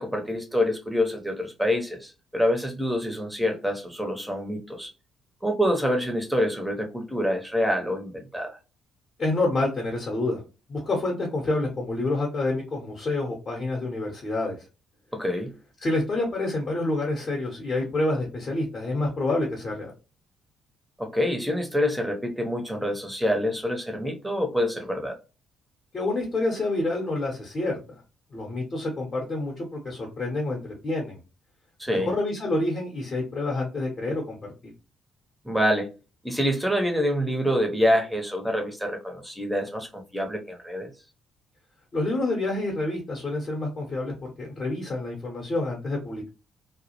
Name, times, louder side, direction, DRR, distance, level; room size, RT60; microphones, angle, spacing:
voice 1, 0.0-4.9 5.4-8.6 15.1-15.5 21.0-25.2 31.8-32.1 35.4-35.9 36.2-40.9, equal, 5° right, 0.7 m, -26 dB
voice 2, 9.2-10.4 10.7-14.6 15.8-19.9 25.9-28.0 28.3-31.2 31.9-34.4 41.9-46.3, left 2 dB, 35° left, 0.8 m, -28 dB
2.3 x 2.0 x 2.8 m
figure-of-eight pair, 45°, 0 cm